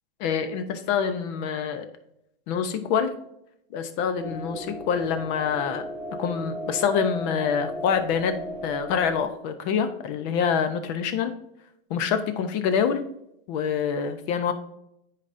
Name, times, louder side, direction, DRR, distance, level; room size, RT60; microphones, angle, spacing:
voice 1, 0.2-1.9 2.5-3.1 3.7-5.8 6.2-8.4 8.6-11.3 11.9-13.0 13.5-14.5, left 7 dB, 50° left, 9 dB, 0.9 m, -26 dB
sound 1, 4.2-9.2, equal, 5° right, 2.6 m, -35 dB
9.8 x 4.2 x 2.7 m, 0.79 s
hypercardioid pair, 125°, 29 cm